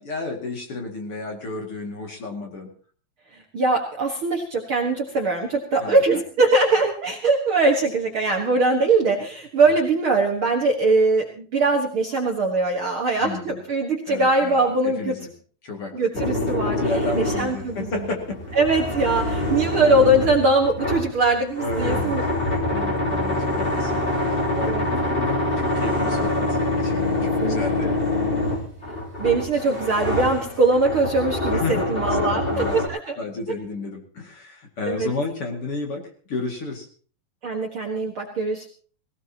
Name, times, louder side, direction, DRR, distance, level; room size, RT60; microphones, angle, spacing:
voice 1, 0.0-2.7 5.8-6.0 13.2-13.6 14.1-15.3 15.6-16.2 16.7-18.4 21.6-22.1 22.4-27.9 31.5-32.0 32.3-32.8 33.2-36.9, left 3 dB, 40° left, 2 dB, 2.9 m, -32 dB
voice 2, 3.3-15.2 15.9-16.8 17.1-18.0 18.6-22.2 24.6-24.9 27.2-28.5 29.2-33.2 34.9-35.1 37.4-38.7, right 2 dB, 45° right, 1 dB, 1.9 m, -22 dB
sound 1, 16.1-32.9, left 2 dB, 15° left, 3.1 m, -25 dB
20.0 x 18.0 x 2.9 m, 0.42 s
omnidirectional pair, 4.1 m